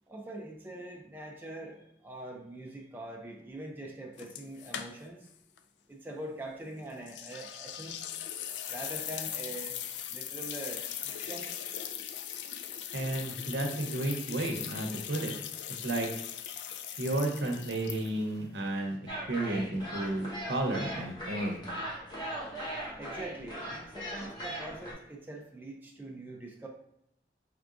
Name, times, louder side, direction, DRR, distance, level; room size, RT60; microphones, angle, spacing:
voice 1, 0.1-5.3 5.9-8.1 8.7-9.8 10.1-11.6 23.0-26.7, right 1 dB, 10° right, -1 dB, 0.4 m, -43 dB
sound 1, 4.2-5.3 5.6-5.7 7.1-18.4, left 9 dB, 75° left, 0.3 m, -40 dB
voice 2, 12.9-15.3 15.8-16.1 17.0-19.0 19.3-21.6, right 1 dB, 75° right, 2 dB, 0.8 m, -32 dB
sound 2, 19.1-24.9, equal, 25° left, 1.1 m, -39 dB
4.7 x 3.5 x 2.5 m, 0.77 s
head